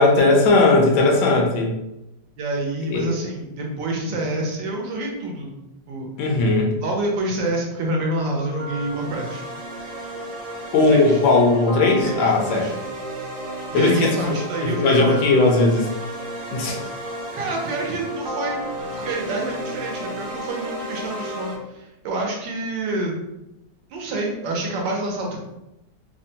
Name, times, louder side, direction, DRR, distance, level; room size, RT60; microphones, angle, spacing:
voice 1, 0.0-1.7 2.9-3.1 6.2-6.7 10.7-12.7 13.7-14.4 14.6-15.9 16.5-16.9, left 2 dB, 75° left, 1 dB, 1.1 m, -18 dB
voice 2, 2.4-5.5 5.9-6.1 6.8-9.4 10.7-11.2 12.0-12.7 13.7-15.2 17.3-18.6 18.9-23.2 23.9-25.4, right 2 dB, 80° right, -1 dB, 1.4 m, -27 dB
sound 1, 8.4-21.5, right 1 dB, 60° right, 0.9 m, -33 dB
3.4 x 2.1 x 2.7 m, 0.92 s
omnidirectional pair, 1.9 m